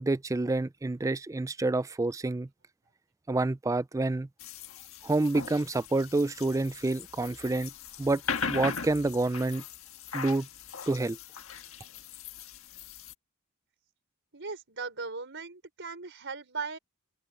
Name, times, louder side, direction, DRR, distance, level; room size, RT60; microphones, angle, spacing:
voice 1, 0.0-2.5 3.3-4.3 5.0-7.7 8.0-8.2 8.5-9.6 10.1-10.5 10.9-11.2, right 2 dB, 15° right, 0.3 m, -28 dB
sound 1, 4.4-13.1, left 5 dB, 65° left, 1.6 m, -39 dB
voice 2, 14.3-16.8, right 4 dB, 55° right, 5.3 m, -38 dB
open air
head